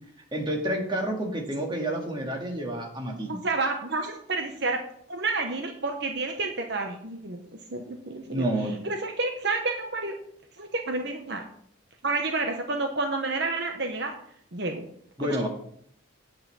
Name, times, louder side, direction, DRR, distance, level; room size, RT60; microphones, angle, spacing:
voice 1, 0.3-3.4 8.3-8.8 15.2-15.5, right 1 dB, 25° right, 0 dB, 2.1 m, -29 dB
voice 2, 3.3-4.8 5.1-7.4 7.7-8.4 8.8-10.1 10.6-11.5 12.0-14.1 14.5-14.8 15.2-15.5, right 3 dB, 55° right, 4 dB, 1.0 m, -29 dB
9.7 x 5.6 x 7.1 m, 0.65 s
head